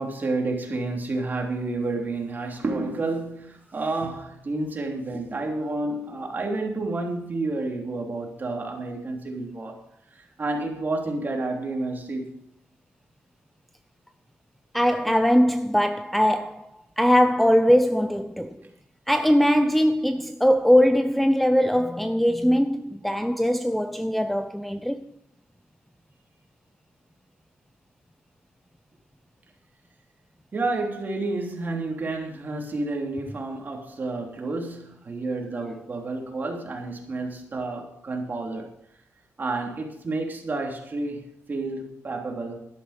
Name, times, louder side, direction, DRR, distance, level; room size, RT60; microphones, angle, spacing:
voice 1, 0.0-9.8 10.1-12.4 30.5-38.7 39.4-42.6, right 2 dB, 35° right, 3.4 m, -30 dB
voice 2, 14.7-16.7 17.0-18.6 19.1-25.1, equal, ahead, 0.6 m, -21 dB
12.5 x 11.5 x 5.2 m
cardioid pair, 110°, 5 cm